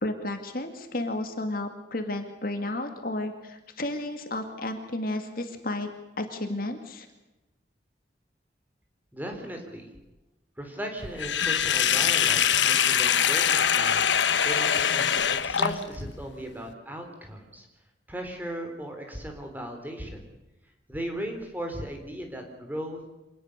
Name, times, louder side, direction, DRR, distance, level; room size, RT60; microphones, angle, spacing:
voice 1, 0.0-5.9 6.2-7.1, left 1 dB, 50° left, 6 dB, 2.3 m, -32 dB
voice 2, 9.1-9.9 10.6-17.7 18.1-20.3 20.9-23.0, equal, 10° right, 3 dB, 3.9 m, -37 dB
Sink (filling or washing), 11.2-16.1, left 8 dB, 75° left, 1.2 m, -23 dB
26.0 x 19.5 x 6.7 m, 1.0 s
head